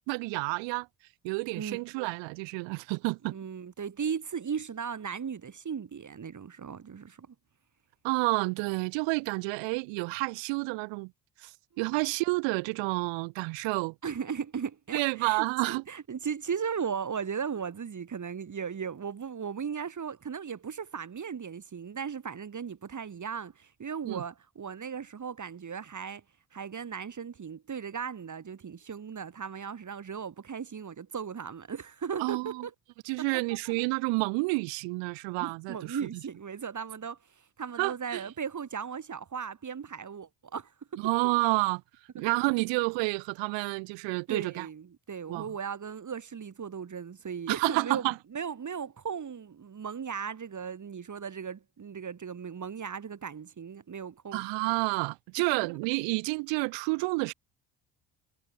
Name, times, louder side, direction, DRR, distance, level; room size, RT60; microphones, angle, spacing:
voice 1, 0.1-0.9 1.2-3.3 8.0-11.1 11.4-11.5 11.8-13.9 14.9-15.8 24.0-24.2 32.2-32.7 33.0-36.0 37.8-38.2 41.0-41.8 42.1-44.7 45.3-45.5 47.5-48.1 54.3-57.3, right 28 dB, 75° right, 3.3 m, -29 dB
voice 2, 3.3-7.3 14.0-26.2 26.5-32.7 33.6-33.9 35.4-41.1 44.3-54.4, right 7 dB, 40° right, 6.1 m, -37 dB
hypercardioid pair, 60°, 44 cm